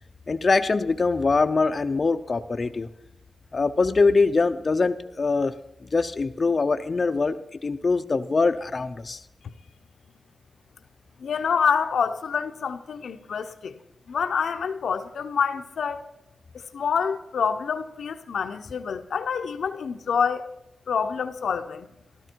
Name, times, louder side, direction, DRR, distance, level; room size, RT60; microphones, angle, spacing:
voice 1, 0.3-2.9 3.5-5.5 5.9-9.2, left 4 dB, 40° left, 0.6 m, -23 dB
voice 2, 11.2-13.7 14.1-16.1 16.7-20.5 20.9-21.9, left 6 dB, 85° left, 0.8 m, -27 dB
15.0 x 12.5 x 4.5 m
wide cardioid pair, 95°, 0 cm